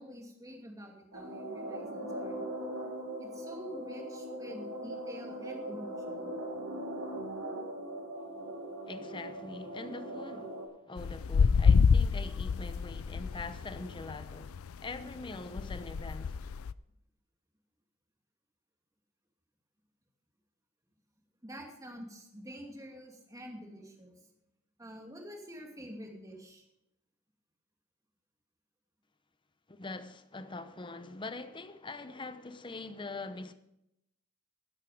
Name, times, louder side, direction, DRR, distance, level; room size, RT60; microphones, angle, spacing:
voice 1, 0.0-2.4 3.2-6.2 10.7-10.8 12.5-12.6 21.4-24.1 24.8-26.6, equal, 15° right, 2.3 m, -47 dB
sound 1, 1.1-10.7, right 1 dB, 75° right, 3.3 m, -40 dB
voice 2, 8.9-10.6 10.8-14.5 14.8-16.4 29.7-33.5, left 3 dB, 20° left, 0.8 m, -43 dB
sound 2, 11.0-16.7, left 5 dB, 65° left, 0.4 m, -27 dB
13.0 x 11.0 x 5.0 m
head